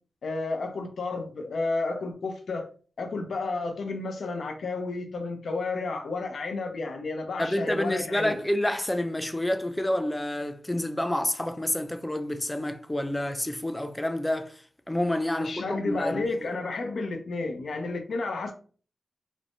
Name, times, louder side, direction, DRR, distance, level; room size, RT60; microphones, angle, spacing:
voice 1, 0.2-2.7 3.0-8.3 15.3-18.5, left 3 dB, 75° left, 0.5 m, -31 dB
voice 2, 7.4-14.6 14.9-16.5, left 1 dB, 15° left, 0.3 m, -28 dB
3.2 x 2.1 x 2.5 m
cardioid pair, 60°, 0 cm